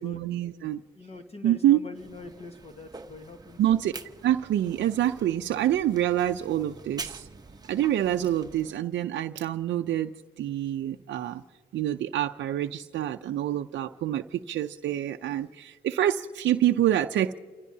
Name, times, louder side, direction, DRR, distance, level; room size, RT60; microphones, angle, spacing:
voice 1, 0.0-0.8 1.4-1.8 3.6-3.9 4.2-7.3 7.7-10.1 10.4-11.4 11.7-17.3, right 12 dB, 65° right, 6 dB, 0.5 m, -26 dB
voice 2, 0.9-3.6, left 3 dB, 30° left, 6 dB, 1.5 m, -44 dB
sound 1, 2.0-8.7, right 3 dB, 20° right, 1.0 m, -45 dB
30.0 x 15.5 x 2.8 m, 1.5 s
cardioid pair, 90°, 20 cm